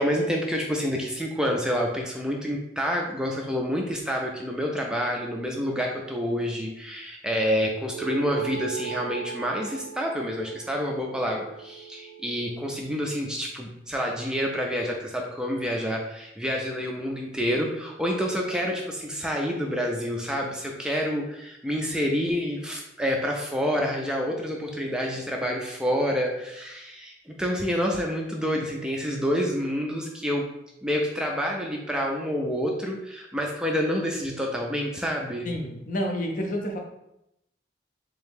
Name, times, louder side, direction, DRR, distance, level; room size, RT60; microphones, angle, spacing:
voice 1, 0.0-30.5 30.8-35.5, equal, 5° right, 0 dB, 0.3 m, -28 dB
sound 1, 7.9-12.7, right 7 dB, 85° right, 0.3 m, -38 dB
voice 2, 35.4-36.8, equal, 45° left, 2 dB, 0.6 m, -29 dB
3.4 x 2.8 x 3.5 m, 0.84 s
head